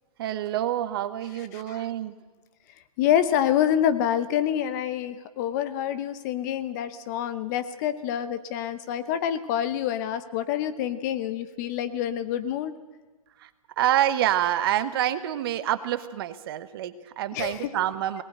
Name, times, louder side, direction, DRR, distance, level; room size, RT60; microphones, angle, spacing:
voice 1, 0.2-2.2 13.4-13.5 13.8-18.2, right 12 dB, 40° right, 12 dB, 1.1 m, -27 dB
voice 2, 3.0-12.7 17.3-17.7, left 10 dB, 30° left, 12 dB, 0.9 m, -27 dB
19.5 x 18.5 x 8.0 m, 1.2 s
hypercardioid pair, 140°, 19 cm